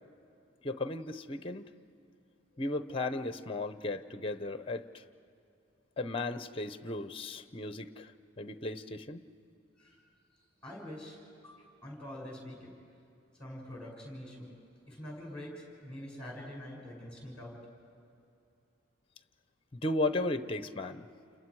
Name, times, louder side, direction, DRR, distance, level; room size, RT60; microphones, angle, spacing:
voice 1, 0.6-1.6 2.6-5.0 6.0-8.1 8.4-9.2 19.7-21.1, left 2 dB, 30° left, 11 dB, 0.7 m, -35 dB
voice 2, 10.6-12.7 13.4-17.6, left 1 dB, 5° left, -2 dB, 6.1 m, -45 dB
29.0 x 29.0 x 4.8 m, 2.7 s
head